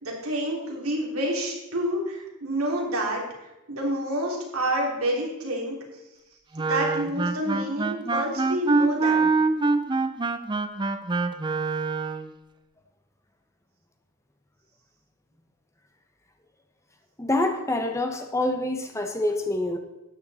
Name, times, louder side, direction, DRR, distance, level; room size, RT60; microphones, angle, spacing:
voice 1, 0.0-3.2 3.7-5.8 6.6-9.3, right 1 dB, 80° right, -1 dB, 3.4 m, -28 dB
Wind instrument woodwind instrument, 6.5-12.3, right 3 dB, 20° right, 0.6 m, -25 dB
voice 2, 17.2-19.8, left 2 dB, 15° left, 5 dB, 1.0 m, -26 dB
12.5 x 9.4 x 4.3 m, 0.97 s
head